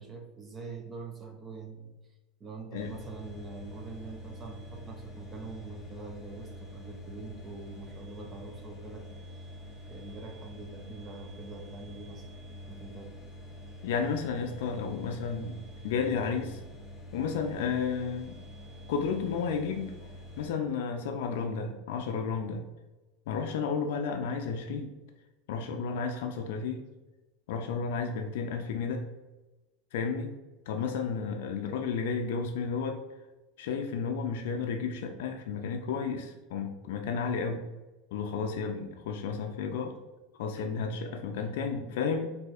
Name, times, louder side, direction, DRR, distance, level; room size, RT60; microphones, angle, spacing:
voice 1, 0.0-1.9 2.4-9.4 9.9-12.3 12.7-13.0, right 3 dB, 25° right, 4 dB, 0.4 m, -44 dB
sound 1, 2.8-20.5, left 1 dB, 15° left, 1.0 m, -46 dB
voice 2, 13.8-16.6 17.1-18.4 18.9-19.9 20.4-22.6 23.3-24.9 25.5-26.8 27.5-29.0 29.9-30.3 30.7-33.0 33.6-37.6 38.1-40.0 40.3-42.3, left 5 dB, 80° left, 3 dB, 0.3 m, -32 dB
4.0 x 2.7 x 2.4 m, 1.1 s
supercardioid pair, 145°, 0 cm